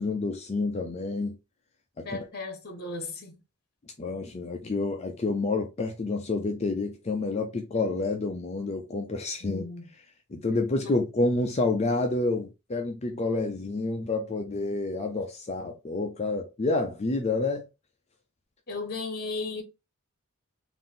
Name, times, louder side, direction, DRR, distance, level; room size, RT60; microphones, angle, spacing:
voice 1, 0.0-1.4 2.1-2.2 4.0-9.6 10.3-17.7, left 3 dB, 30° left, 0.5 m, -29 dB
voice 2, 2.0-3.4 9.4-9.9 10.8-11.0 18.7-19.6, left 3 dB, 45° left, 1.1 m, -35 dB
3.9 x 2.6 x 3.6 m
head